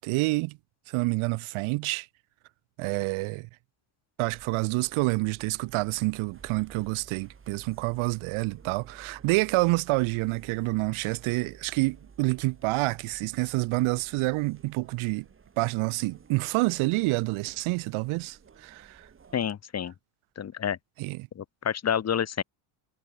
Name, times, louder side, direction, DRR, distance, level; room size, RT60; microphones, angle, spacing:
voice 1, 0.1-0.6 0.9-2.1 2.8-3.5 4.2-15.2 15.6-19.1 21.0-21.3, right 23 dB, 75° right, 1.5 m, -28 dB
sound 1, 4.3-19.5, right 6 dB, 25° right, 6.5 m, -53 dB
voice 2, 19.3-19.9 20.4-20.8 21.4-22.4, left 8 dB, 30° left, 1.9 m, -29 dB
cardioid pair, 140°, 49 cm